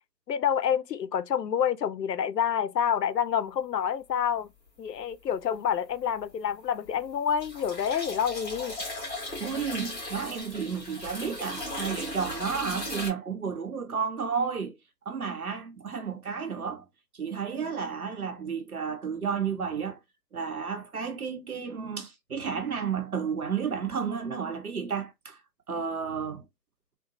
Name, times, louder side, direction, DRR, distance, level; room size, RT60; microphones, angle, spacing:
voice 1, 0.3-4.5 4.8-8.8, left 8 dB, 85° left, 0.5 m, -28 dB
sound 1, 5.0-5.5 5.9-13.1, left 1 dB, 10° left, 1.5 m, -37 dB
voice 2, 9.4-14.7 15.1-16.9 17.1-20.0 20.3-25.4 25.7-26.4, right 6 dB, 65° right, 0.9 m, -32 dB
3.8 x 2.2 x 2.7 m
figure-of-eight pair, 160°, 48 cm